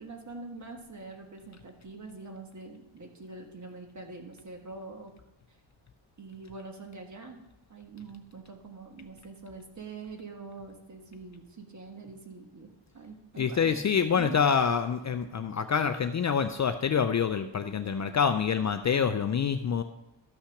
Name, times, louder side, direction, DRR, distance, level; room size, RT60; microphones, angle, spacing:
voice 1, 0.0-5.1 6.2-7.4 7.7-13.8 14.1-14.4, right 3 dB, 40° right, 3 dB, 1.5 m, -44 dB
voice 2, 13.4-19.8, left 6 dB, 40° left, 8 dB, 0.4 m, -26 dB
13.0 x 5.8 x 5.9 m, 0.94 s
wide cardioid pair, 155°, 46 cm